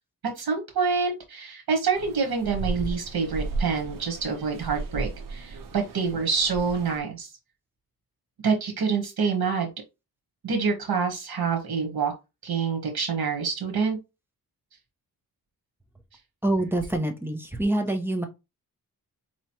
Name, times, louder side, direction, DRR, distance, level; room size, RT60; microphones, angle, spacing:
voice 1, 0.4-7.3 8.4-9.7 10.4-12.1 12.4-14.0, right 5 dB, 85° right, 2 dB, 1.2 m, -26 dB
sound 1, 1.9-7.0, right 3 dB, 60° right, 0.8 m, -35 dB
voice 2, 16.4-18.3, right 1 dB, 5° right, 4 dB, 0.8 m, -26 dB
4.8 x 3.1 x 2.9 m, 0.25 s
wide cardioid pair, 115°, 37 cm